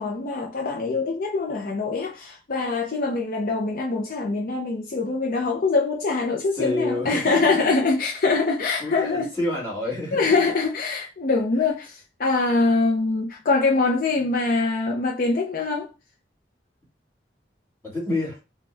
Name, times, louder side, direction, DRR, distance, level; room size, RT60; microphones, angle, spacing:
voice 1, 0.0-9.3 10.1-15.9, left 3 dB, 55° left, 0.5 m, -23 dB
voice 2, 6.5-7.6 8.8-10.2 11.6-11.7 17.8-18.4, left 2 dB, 15° left, 2.3 m, -28 dB
4.3 x 2.2 x 3.3 m
head